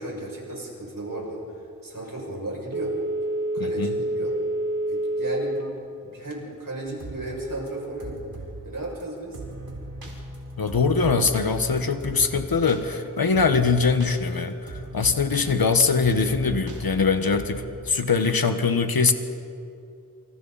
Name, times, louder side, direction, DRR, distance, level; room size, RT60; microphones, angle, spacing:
voice 1, 0.0-1.4 1.8-2.9 3.5-4.3 4.9-5.8 6.0-8.2 8.6-9.4, right 2 dB, 70° right, -2 dB, 6.7 m, -34 dB
Telephone, 2.7-5.8 6.2-6.3, right 1 dB, 50° right, 2.5 m, -27 dB
voice 2, 3.6-4.0 10.6-19.1, left 4 dB, 85° left, 7 dB, 1.4 m, -22 dB
sound 1, 6.9-7.2 7.5-8.6 9.0-9.1 9.3-17.7, right 2 dB, 90° right, 4.7 m, -39 dB
28.5 x 26.5 x 4.2 m, 2.5 s
wide cardioid pair, 55°, 35 cm